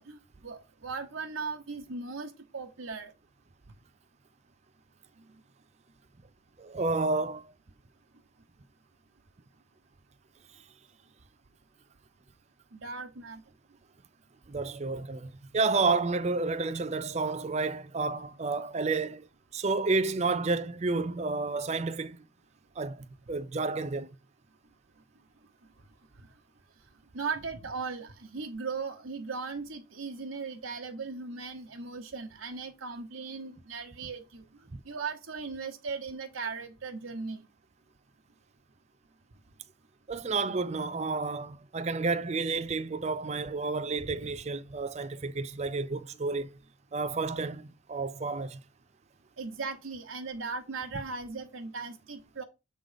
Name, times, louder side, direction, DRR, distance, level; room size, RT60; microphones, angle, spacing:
voice 1, 0.0-3.1 5.2-5.3 12.7-13.4 26.2-26.3 27.1-37.4 49.4-52.4, right 4 dB, 70° right, 1.1 m, -38 dB
voice 2, 6.6-7.4 14.5-19.3 19.5-22.2 22.8-24.1 40.1-46.5 46.9-48.6, right 3 dB, 30° right, 0.5 m, -30 dB
7.4 x 3.9 x 5.1 m
head